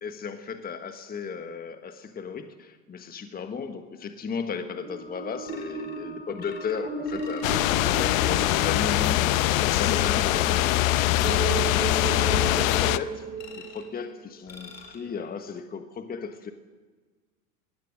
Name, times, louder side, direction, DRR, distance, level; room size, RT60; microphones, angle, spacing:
voice 1, 0.0-11.4 11.8-13.2 13.5-16.5, left 5 dB, 20° left, 8 dB, 1.4 m, -36 dB
sound 1, 4.8-14.1, right 4 dB, 15° right, 2.7 m, -35 dB
sound 2, 5.5-6.0 6.4-7.6 7.9-8.4 8.9-9.3 9.6-10.1 10.5-10.9 11.3-11.8 12.3-12.9 13.4-13.9 14.5-15.0, left 4 dB, 80° left, 4.7 m, -47 dB
sound 3, 7.4-13.0, left 17 dB, 55° left, 1.0 m, -23 dB
25.0 x 20.5 x 6.4 m, 1.4 s
hypercardioid pair, 90°, 49 cm